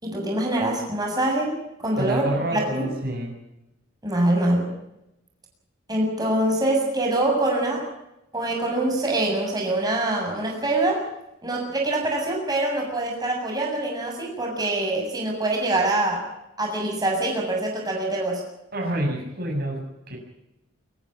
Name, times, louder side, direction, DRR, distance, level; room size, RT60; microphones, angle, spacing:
voice 1, 0.0-2.9 4.0-4.7 5.9-7.8 8.3-11.1 11.4-16.2 16.6-18.4, right 1 dB, 20° right, -1 dB, 7.0 m, -24 dB
voice 2, 2.0-3.4 18.7-20.2, right 1 dB, 50° right, 2 dB, 6.8 m, -28 dB
24.5 x 15.5 x 8.9 m, 0.89 s
head